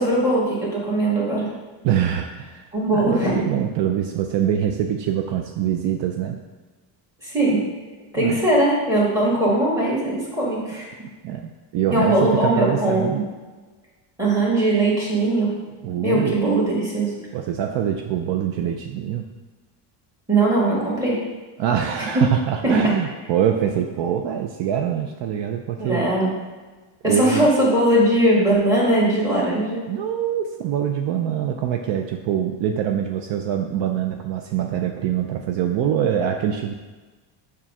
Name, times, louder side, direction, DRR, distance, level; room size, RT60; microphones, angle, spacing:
voice 1, 0.0-1.5 2.7-3.5 7.2-7.6 8.1-10.9 11.9-13.2 14.2-15.5 16.0-17.1 20.3-21.2 22.6-22.9 25.8-26.3 27.0-29.8, right 1 dB, 5° right, -6 dB, 1.8 m, -20 dB
voice 2, 1.8-2.7 2.9-6.4 8.2-8.4 11.2-13.2 15.8-16.4 17.3-19.3 21.6-26.1 27.0-27.5 29.9-36.7, right 9 dB, 65° right, 4 dB, 0.5 m, -24 dB
7.2 x 2.4 x 5.4 m, 1.3 s
cardioid pair, 160°, 49 cm